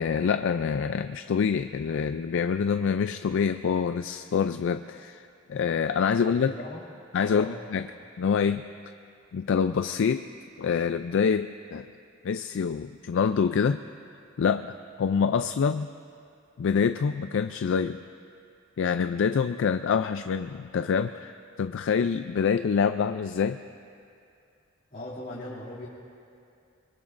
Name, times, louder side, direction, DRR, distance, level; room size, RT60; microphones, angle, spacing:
voice 1, 0.0-6.5 7.1-7.9 8.2-8.6 9.3-10.2 10.6-11.9 12.2-13.8 14.4-15.9 16.6-18.0 18.8-23.6, left 6 dB, 65° left, 9 dB, 0.4 m, -26 dB
voice 2, 6.1-6.8 7.3-7.6 24.9-25.9, left 1 dB, 45° left, -9 dB, 2.7 m, -39 dB
24.0 x 22.0 x 2.5 m, 2.5 s
head